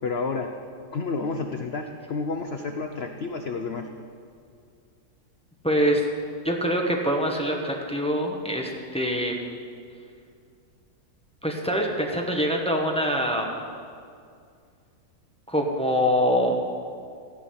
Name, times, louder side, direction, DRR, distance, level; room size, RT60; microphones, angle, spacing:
voice 1, 0.0-0.5 0.9-3.9, left 4 dB, 85° left, 5 dB, 0.5 m, -30 dB
voice 2, 5.6-6.0 6.4-9.4 11.4-13.5 15.5-16.6, equal, 5° left, 0 dB, 0.9 m, -24 dB
15.0 x 5.7 x 9.7 m, 2.3 s
omnidirectional pair, 2.0 m